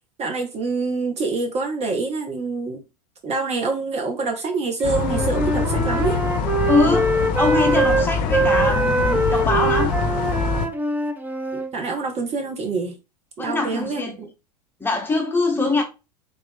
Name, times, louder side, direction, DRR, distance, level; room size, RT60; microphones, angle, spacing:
voice 1, 0.2-2.8 3.2-6.2 11.5-12.9 13.4-14.3, right 3 dB, 30° right, 0.8 m, -26 dB
sound 1, 4.8-10.7, left 5 dB, 45° left, 0.7 m, -24 dB
Wind instrument woodwind instrument, 4.9-11.7, right 2 dB, 10° right, 0.4 m, -23 dB
voice 2, 6.7-10.0 13.4-14.2 14.8-15.8, left 3 dB, 10° left, 1.0 m, -23 dB
3.7 x 2.4 x 3.6 m
figure-of-eight pair, 85°, 21 cm